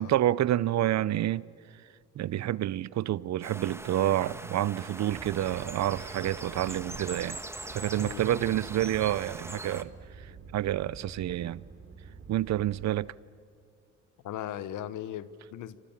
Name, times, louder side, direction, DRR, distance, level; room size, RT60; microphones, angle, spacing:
voice 1, 0.0-1.5 2.2-7.4 7.7-9.9 10.2-11.6 12.3-13.1, right 13 dB, 65° right, 0.7 m, -28 dB
sound 1, 3.4-9.8, right 1 dB, 10° right, 1.4 m, -42 dB
sound 2, 5.1-12.8, right 5 dB, 45° right, 3.0 m, -48 dB
voice 2, 8.0-8.5 14.2-15.8, left 11 dB, 85° left, 1.1 m, -38 dB
28.5 x 26.0 x 7.3 m
cardioid pair, 90°, 30 cm